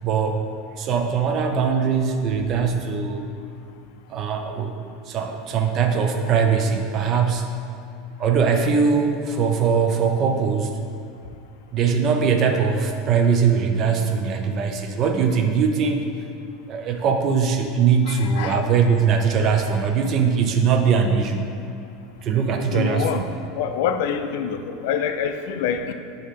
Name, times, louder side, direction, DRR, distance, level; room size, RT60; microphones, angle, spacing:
voice 1, 0.0-0.5 0.8-3.2 4.1-4.7 5.1-7.5 8.2-10.7 11.7-16.1 16.7-21.5 22.2-23.2, right 6 dB, 30° right, 5 dB, 0.4 m, -21 dB
voice 2, 18.1-18.6 19.4-19.5 22.7-25.9, left 7 dB, 65° left, 8 dB, 0.4 m, -26 dB
6.8 x 2.8 x 5.0 m, 2.5 s
supercardioid pair, 165°, 0 cm